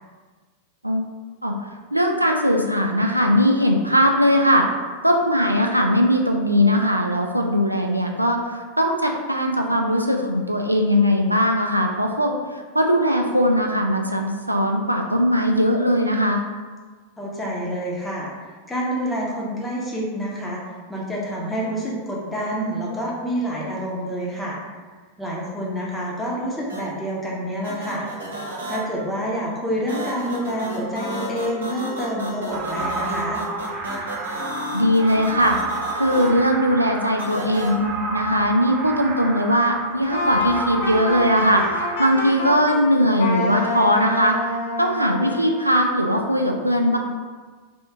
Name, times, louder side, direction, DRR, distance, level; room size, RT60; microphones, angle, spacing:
voice 1, 1.9-4.7 5.0-12.4 12.7-16.4 34.7-35.6 35.9-44.4 44.8-47.0, equal, 85° right, 2 dB, 0.3 m, -20 dB
voice 2, 17.2-18.3 18.7-20.6 20.9-24.6 25.2-28.1 28.7-33.4, equal, 5° left, -4 dB, 0.9 m, -27 dB
sound 1, 26.7-26.8 27.6-28.8 29.9-36.3 37.2-37.7, right 1 dB, 70° right, 0.8 m, -32 dB
sound 2, 32.5-42.3, right 3 dB, 30° right, 0.5 m, -31 dB
Wind instrument woodwind instrument, 40.1-42.8 43.2-45.6, left 2 dB, 60° left, 0.6 m, -27 dB
3.4 x 2.7 x 3.5 m, 1.4 s
figure-of-eight pair, 90°, 0 cm